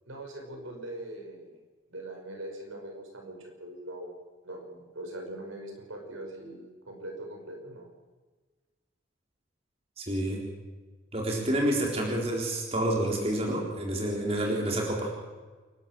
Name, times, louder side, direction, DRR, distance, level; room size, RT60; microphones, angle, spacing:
voice 1, 0.1-1.5 1.9-4.1 4.4-7.9, right 1 dB, 85° right, 2 dB, 5.8 m, -41 dB
voice 2, 10.0-10.4 11.1-15.1, right 1 dB, 30° right, 0 dB, 4.0 m, -28 dB
28.0 x 12.0 x 7.7 m, 1.3 s
head